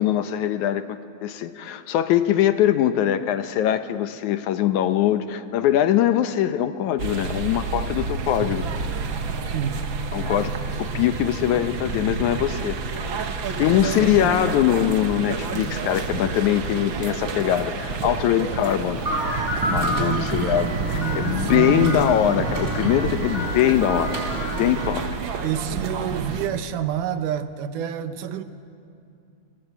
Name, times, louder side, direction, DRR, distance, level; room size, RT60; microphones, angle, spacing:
voice 1, 0.0-8.6 10.1-10.5 10.8-12.8 13.6-19.0 19.7-24.2 24.5-25.1, left 11 dB, 70° left, 10 dB, 2.0 m, -22 dB
sound 1, 7.0-26.5, right 4 dB, 55° right, 1.5 m, -29 dB
voice 2, 9.5-9.9 13.6-14.3 18.4-18.6 19.9-22.0 25.4-28.4, right 9 dB, 75° right, 10 dB, 2.4 m, -29 dB
sound 2, 18.9-24.9, equal, 20° right, 4.6 m, -29 dB
29.5 x 19.0 x 8.1 m, 2.5 s
omnidirectional pair, 3.9 m